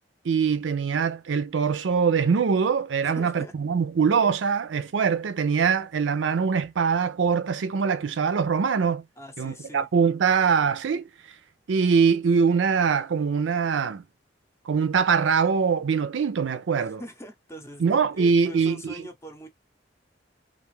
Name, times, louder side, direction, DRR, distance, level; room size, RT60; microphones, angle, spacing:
voice 1, 0.2-9.0 9.4-11.0 11.7-14.0 14.7-17.0 17.8-19.0, right 6 dB, 90° right, 0.4 m, -23 dB
voice 2, 3.0-3.5 9.2-9.9 16.8-19.5, equal, 15° left, 0.6 m, -42 dB
2.4 x 2.4 x 3.0 m
head